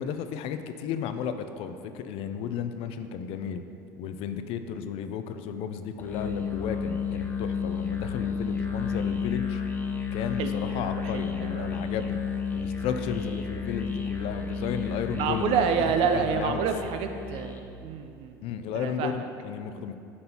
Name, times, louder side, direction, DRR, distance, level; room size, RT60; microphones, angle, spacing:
voice 1, 0.0-3.6 4.0-9.6 10.1-12.2 12.5-15.6 16.1-16.7 18.4-19.9, left 7 dB, 60° left, 9 dB, 0.5 m, -33 dB
Musical instrument, 6.0-17.7, left 6 dB, 15° left, 0.7 m, -32 dB
voice 2, 10.4-11.8 15.1-18.4 18.7-19.1, right 6 dB, 60° right, 7 dB, 0.6 m, -28 dB
9.4 x 5.3 x 2.9 m, 2.6 s
hypercardioid pair, 80°, 11 cm